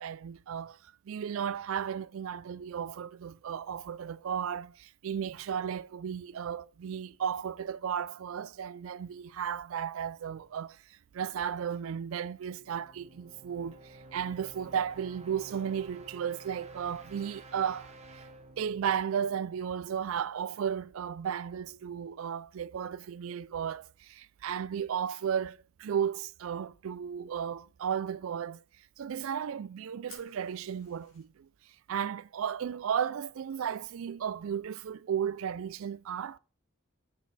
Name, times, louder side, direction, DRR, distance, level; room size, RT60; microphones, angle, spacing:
voice 1, 0.0-18.2 18.6-28.6 29.0-31.5 31.9-36.4, right 8 dB, 70° right, 0.4 m, -34 dB
sound 1, 12.4-20.2, right 2 dB, 35° right, 1.0 m, -52 dB
Fire, 30.1-31.2, left 4 dB, 65° left, 3.9 m, -55 dB
8.1 x 6.3 x 4.1 m
head